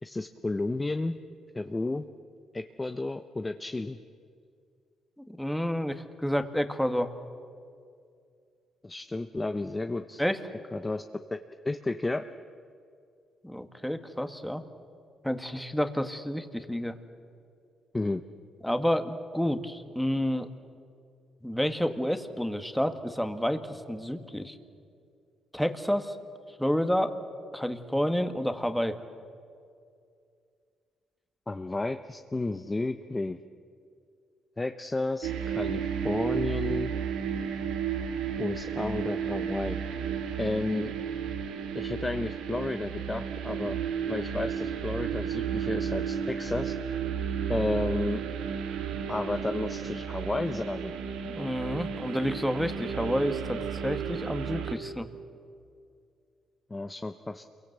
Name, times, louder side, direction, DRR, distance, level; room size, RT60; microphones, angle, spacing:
voice 1, 0.0-1.1 1.5-2.1 2.5-4.0 8.8-10.2 10.7-11.0 11.3-11.4 11.6-12.3 17.9-18.2 31.5-33.4 34.6-36.9 38.4-39.8 40.4-40.9 41.7-43.8 44.1-46.7 47.5-48.2 49.1-50.9 56.7-57.4, left 2 dB, 20° left, 8 dB, 0.8 m, -32 dB
voice 2, 5.3-7.1 10.2-10.4 13.4-14.6 15.2-16.9 18.6-20.5 21.4-24.6 25.5-26.2 26.6-27.2 27.5-29.0 51.2-55.1, equal, 5° left, 8 dB, 1.8 m, -29 dB
sound 1, 35.2-54.7, right 7 dB, 90° right, 2.1 m, -33 dB
28.0 x 23.0 x 8.1 m, 2.3 s
cardioid pair, 90°, 0 cm